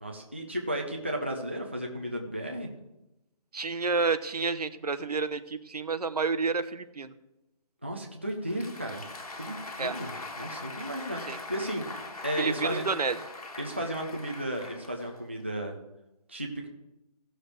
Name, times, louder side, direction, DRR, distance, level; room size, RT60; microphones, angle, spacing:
voice 1, 0.0-2.7 7.8-9.0 9.3-10.1 10.4-12.8 13.6-15.8 16.3-16.7, equal, 15° right, 1 dB, 0.5 m, -34 dB
voice 2, 3.5-7.1 9.8-10.0 11.3-11.4 12.4-13.2, right 4 dB, 70° right, 12 dB, 0.9 m, -29 dB
Applause, 8.3-15.4, left 2 dB, 65° left, 1.7 m, -42 dB
16.5 x 6.7 x 3.3 m, 0.93 s
hypercardioid pair, 180°, 21 cm